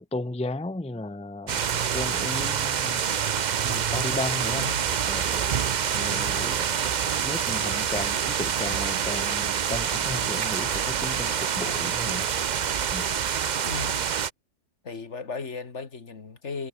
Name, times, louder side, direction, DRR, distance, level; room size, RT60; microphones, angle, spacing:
voice 1, 0.0-3.0 3.6-4.7 5.1-5.4 5.9-12.3 12.9-13.2, left 2 dB, 5° left, 0.7 m, -35 dB
sound 1, 1.5-14.3, right 8 dB, 45° right, 0.7 m, -26 dB
voice 2, 4.5-4.9 13.6-14.1 14.8-16.7, left 4 dB, 65° left, 2.3 m, -36 dB
sound 2, 8.7-11.8 12.7-14.0, right 9 dB, 60° right, 1.1 m, -44 dB
omnidirectional pair, 1.3 m